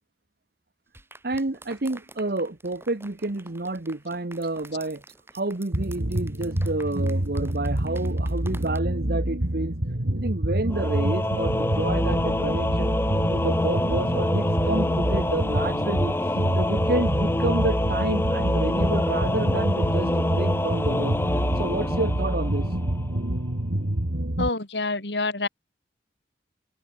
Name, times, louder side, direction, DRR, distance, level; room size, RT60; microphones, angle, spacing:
sound 1, 0.9-8.8, right 2 dB, 15° right, 7.3 m, -49 dB
voice 1, 1.2-5.0 5.3-9.8 10.1-16.1 16.5-21.2 21.6-22.7, right 2 dB, 60° right, 1.1 m, -29 dB
sound 2, 5.7-24.5, right 1 dB, 85° right, 2.5 m, -27 dB
Singing / Musical instrument, 10.7-23.2, left 1 dB, 15° left, 0.6 m, -26 dB
voice 2, 24.4-25.5, left 3 dB, 80° left, 3.6 m, -27 dB
head